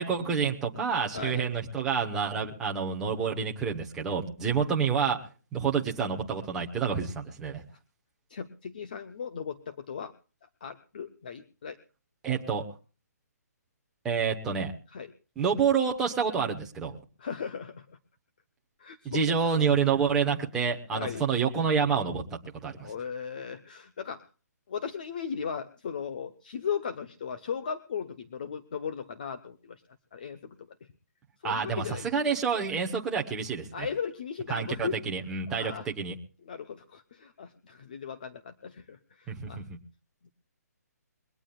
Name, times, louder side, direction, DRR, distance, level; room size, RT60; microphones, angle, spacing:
voice 1, 0.0-5.2 5.5-7.6 12.2-12.7 14.0-14.7 15.4-17.0 19.0-22.2 22.6-22.9 31.4-33.9 34.5-36.2 39.3-39.8, right 6 dB, 5° right, 0 dB, 0.9 m, -28 dB
voice 2, 1.1-1.5 2.3-2.5 4.6-4.7 8.3-10.1 10.6-11.8 14.9-15.1 17.2-18.0 18.8-19.4 20.9-21.2 22.8-24.2 24.7-29.8 30.1-30.6 31.4-32.0 33.7-35.0 35.5-35.9 36.5-39.6 40.2-40.3, left 7 dB, 30° left, 9 dB, 0.7 m, -37 dB
22.0 x 18.0 x 2.3 m, 0.34 s
hypercardioid pair, 180°, 9 cm